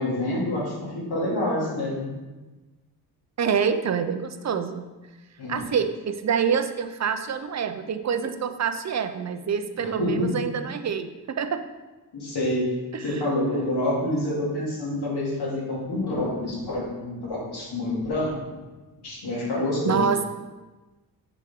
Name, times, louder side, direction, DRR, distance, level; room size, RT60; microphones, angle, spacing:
voice 1, 0.0-2.1 5.4-5.6 10.0-10.3 12.1-12.8 13.0-18.3 19.0-20.0, left 1 dB, 80° left, -5 dB, 2.5 m, -27 dB
voice 2, 3.4-4.9 5.5-11.6 12.9-13.2 19.8-20.2, right 7 dB, 45° right, 9 dB, 0.5 m, -26 dB
7.0 x 6.1 x 3.6 m, 1.2 s
wide cardioid pair, 140°, 39 cm